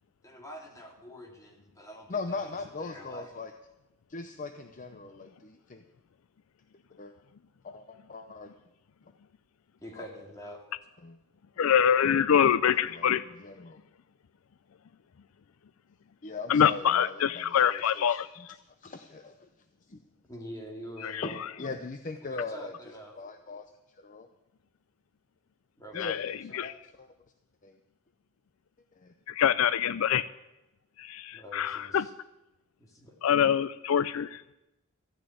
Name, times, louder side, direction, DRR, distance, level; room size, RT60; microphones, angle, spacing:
voice 1, 0.2-3.3 9.8-10.6 20.3-21.4 22.2-23.1 25.8-26.2 26.5-26.7 31.3-32.1 32.8-33.1, equal, 15° left, 0 dB, 2.4 m, -45 dB
voice 2, 2.1-3.5 4.1-5.8 7.0-7.1 7.6-8.5 10.0-10.1 11.0-11.2 12.9-13.1 13.4-13.8 16.2-18.5 18.8-19.5 19.9-20.0 21.2-22.7 23.2-23.6 24.0-24.3 25.9-26.1 26.5-27.1 27.6-27.8 29.0-29.1, left 3 dB, 40° left, 7 dB, 0.7 m, -40 dB
voice 3, 11.6-13.3 16.5-18.6 21.0-21.3 26.0-26.7 29.3-30.3 31.0-32.1 33.2-34.4, left 8 dB, 85° left, 17 dB, 0.4 m, -25 dB
14.5 x 6.5 x 9.4 m, 0.94 s
head